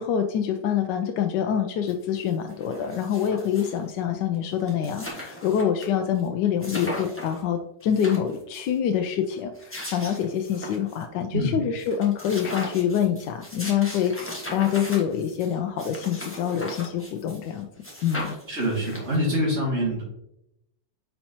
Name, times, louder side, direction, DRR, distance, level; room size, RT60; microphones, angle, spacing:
voice 1, 0.0-17.7 18.0-18.4, left 9 dB, 80° left, 5 dB, 1.2 m, -26 dB
sound 1, 1.9-2.0 2.2-3.9 4.3-4.4 4.6-5.9 6.2-6.3 6.6-7.4 7.8-8.7 9.4-11.0 11.4-11.5 11.8-17.5 17.8-19.3, left 1 dB, 10° left, 1.2 m, -38 dB
voice 2, 18.5-20.0, equal, 40° right, -8 dB, 2.1 m, -25 dB
9.7 x 4.4 x 2.8 m, 0.82 s
omnidirectional pair, 1.9 m